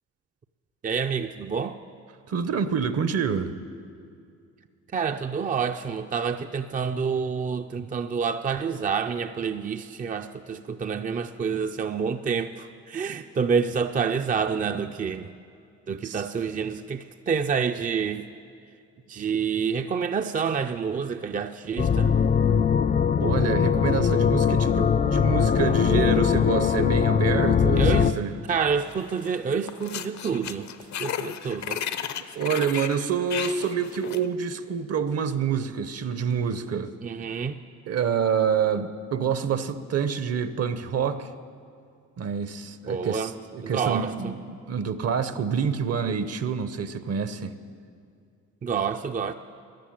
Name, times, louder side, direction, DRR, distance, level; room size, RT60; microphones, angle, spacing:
voice 1, 0.8-1.8 4.9-15.3 15.9-18.2 19.1-22.1 27.8-28.1 28.5-30.7 31.0-31.8 37.0-37.6 42.9-43.3 43.6-44.3 48.6-49.3, right 6 dB, 30° right, 7 dB, 0.5 m, -28 dB
voice 2, 2.3-3.5 16.0-16.2 23.1-28.4 32.3-36.9 37.9-41.3 42.2-47.5, right 7 dB, 55° right, 12 dB, 0.9 m, -27 dB
sound 1, 21.8-28.1, left 7 dB, 30° left, 0.4 m, -21 dB
sound 2, 28.9-29.4 29.6-34.3, left 9 dB, 65° left, 0.8 m, -34 dB
14.0 x 11.0 x 8.7 m, 2.4 s
cardioid pair, 90°, 30 cm